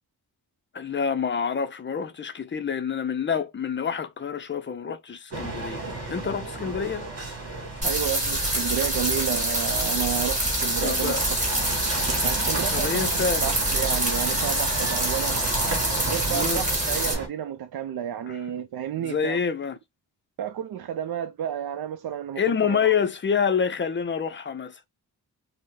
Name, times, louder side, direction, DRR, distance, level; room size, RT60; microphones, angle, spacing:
voice 1, 0.7-5.8 6.1-7.0 10.8-11.2 12.7-13.4 16.3-16.6 18.3-18.4 19.0-19.8 22.4-24.8, left 6 dB, 30° left, 0.4 m, -27 dB
sound 1, 5.3-17.3, right 2 dB, 40° right, 2.4 m, -33 dB
sound 2, 7.8-17.1, right 1 dB, 20° right, 2.1 m, -26 dB
voice 2, 7.8-11.1 12.2-15.4 16.1-19.4 20.4-22.9, right 9 dB, 70° right, 0.5 m, -31 dB
5.4 x 2.1 x 3.2 m
wide cardioid pair, 170°, 38 cm